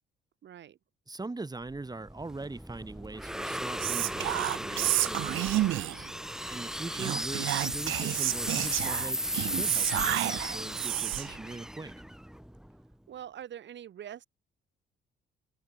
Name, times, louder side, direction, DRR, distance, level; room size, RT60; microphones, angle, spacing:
voice 1, 0.4-0.8 13.1-14.3, right 10 dB, 65° right, 4.6 m, -44 dB
voice 2, 1.1-6.1 6.5-11.9, right 3 dB, 20° right, 4.9 m, -41 dB
sound 1, 1.7-12.9, equal, 5° right, 3.4 m, -36 dB
Whispering, 3.8-6.1 6.9-11.4, right 15 dB, 85° right, 1.7 m, -30 dB
cardioid pair, 90°, 20 cm